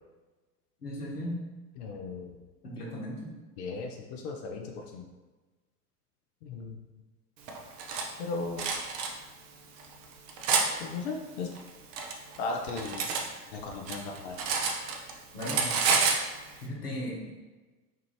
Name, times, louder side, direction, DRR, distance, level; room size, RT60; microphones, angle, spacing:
voice 1, 0.8-1.4 2.6-3.2 15.3-15.7 16.6-17.3, equal, 75° left, -3 dB, 1.1 m, -36 dB
voice 2, 1.8-2.4 3.6-5.0 6.4-6.8 8.2-8.7 10.8-11.5 12.4-13.1 13.5-14.4, left 3 dB, 45° left, 1 dB, 0.5 m, -36 dB
Cutlery silverware, 7.5-8.1 8.6-9.1 9.8-10.7 11.6-13.3 13.6-15.1 15.4-16.2, right 5 dB, 30° right, 0.4 m, -28 dB
4.5 x 2.4 x 3.1 m, 1.2 s
figure-of-eight pair, 80°, 46 cm